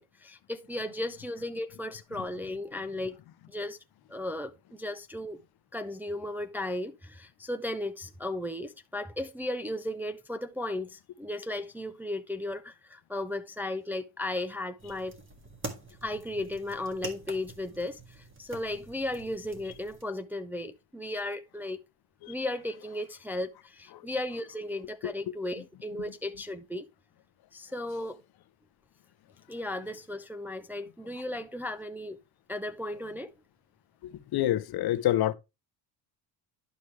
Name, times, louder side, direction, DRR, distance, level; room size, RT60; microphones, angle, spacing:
voice 1, 0.0-3.2 3.5-3.8 4.1-5.4 5.7-15.1 16.0-21.8 22.3-26.9 27.5-28.2 29.5-32.2 32.5-33.3, left 1 dB, 5° right, 0.4 m, -35 dB
sound 1, 14.8-20.0, right 2 dB, 30° right, 1.9 m, -45 dB
voice 2, 34.3-35.3, left 13 dB, 60° left, 0.7 m, -26 dB
11.0 x 5.1 x 3.2 m
cardioid pair, 110°, 43 cm